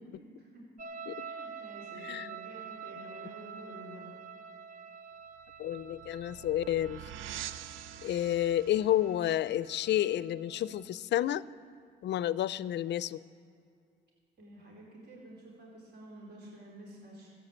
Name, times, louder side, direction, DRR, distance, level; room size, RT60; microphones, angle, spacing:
voice 1, 0.1-0.7 1.2-4.0 14.4-17.3, right 1 dB, 60° right, -4 dB, 4.1 m, -50 dB
sound 1, 0.8-10.8, right 6 dB, 40° right, 0.8 m, -47 dB
voice 2, 2.0-2.4 5.6-7.0 8.0-11.4 12.0-13.2, left 12 dB, 65° left, 19 dB, 0.4 m, -30 dB
sound 2, 5.4-10.8, right 10 dB, 90° right, 0.5 m, -47 dB
14.0 x 9.0 x 8.5 m, 2.4 s
cardioid pair, 90°, 20 cm